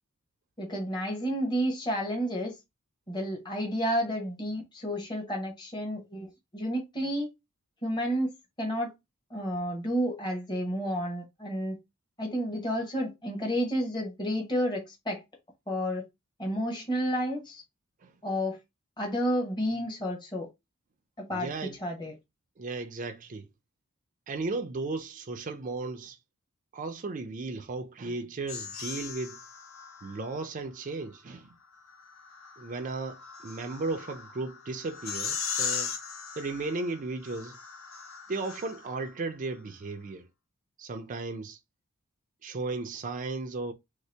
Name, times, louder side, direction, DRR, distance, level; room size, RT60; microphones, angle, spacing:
voice 1, 0.6-2.6 3.1-7.3 7.8-8.3 8.6-8.9 9.3-11.8 12.2-15.2 15.7-16.0 16.4-17.6 18.2-18.6 19.0-20.5 21.2-21.5 21.8-22.1, equal, 20° left, 0.9 m, -31 dB
voice 2, 21.3-21.8 22.6-23.5 24.3-26.2 26.7-29.4 30.0-31.5 32.6-35.9 36.4-37.6 38.3-40.3 40.8-41.6 42.4-43.7, right 3 dB, 35° right, 0.4 m, -35 dB
sound 1, 28.5-30.4 31.9-39.1, left 7 dB, 65° left, 0.7 m, -38 dB
3.2 x 2.8 x 3.2 m
head